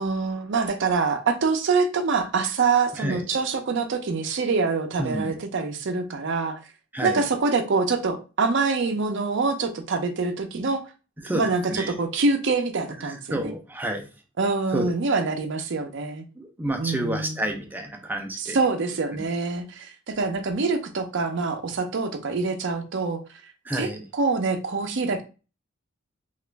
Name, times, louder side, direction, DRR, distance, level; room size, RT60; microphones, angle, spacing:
voice 1, 0.0-6.6 7.0-10.8 11.3-13.5 14.4-16.2 16.8-17.4 18.4-23.2 23.7-25.2, right 4 dB, 60° right, 0.5 m, -25 dB
voice 2, 2.9-3.2 5.0-5.3 6.9-7.2 11.2-12.0 13.0-14.1 14.7-14.9 16.4-18.6 19.1-19.2 23.6-24.1, right 1 dB, 10° right, 0.4 m, -30 dB
2.9 x 2.4 x 3.2 m
head